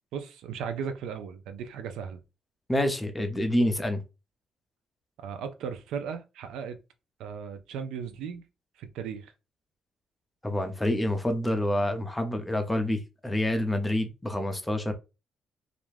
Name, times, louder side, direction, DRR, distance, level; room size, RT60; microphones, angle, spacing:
voice 1, 0.1-2.2 5.2-6.8 7.2-8.4 8.8-9.3, right 7 dB, 85° right, 0.4 m, -36 dB
voice 2, 2.7-4.0 10.4-14.9, left 1 dB, 15° left, 0.6 m, -27 dB
2.4 x 2.2 x 3.2 m
cardioid pair, 90°, 0 cm